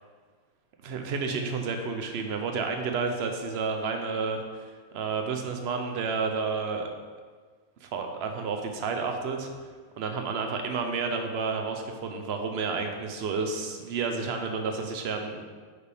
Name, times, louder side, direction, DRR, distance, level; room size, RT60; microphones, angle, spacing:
voice 1, 0.8-6.9 7.8-9.5 10.0-15.4, right 4 dB, 55° right, 4 dB, 0.9 m, -31 dB
8.7 x 5.1 x 3.5 m, 1.5 s
omnidirectional pair, 1.5 m